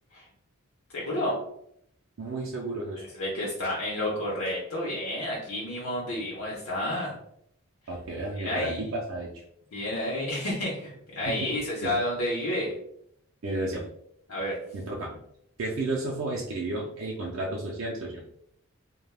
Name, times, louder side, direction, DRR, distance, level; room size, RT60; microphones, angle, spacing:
voice 1, 0.9-1.4 3.0-7.1 8.4-8.9 9.7-12.7 14.3-14.6, left 1 dB, 75° left, -5 dB, 0.7 m, -30 dB
voice 2, 2.2-3.0 7.9-9.3 11.3-11.5 11.8-12.0 13.4-13.9 14.7-15.2 15.6-18.2, right 2 dB, 65° right, -3 dB, 0.4 m, -32 dB
3.3 x 2.2 x 2.3 m, 0.72 s
head